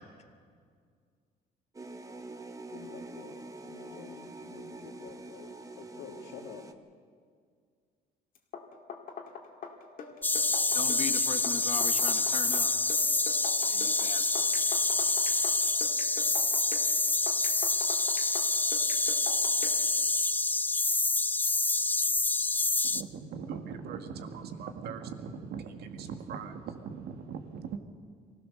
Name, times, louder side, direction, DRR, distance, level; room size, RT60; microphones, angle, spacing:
sound 1, 1.7-6.7, right 3 dB, 20° right, 1.1 m, -45 dB
voice 1, 2.7-6.6, left 6 dB, 80° left, 2 dB, 2.9 m, -48 dB
sound 2, 8.4-19.9, left 5 dB, 55° left, 2.3 m, -43 dB
sound 3, 10.2-23.0, left 3 dB, 10° left, 0.4 m, -27 dB
voice 2, 10.7-12.7 13.7-14.5, left 6 dB, 40° left, 9 dB, 1.4 m, -38 dB
voice 3, 22.8-27.8, right 6 dB, 70° right, 6 dB, 1.9 m, -40 dB
24.0 x 16.5 x 6.7 m, 2.1 s
cardioid pair, 110°, 17 cm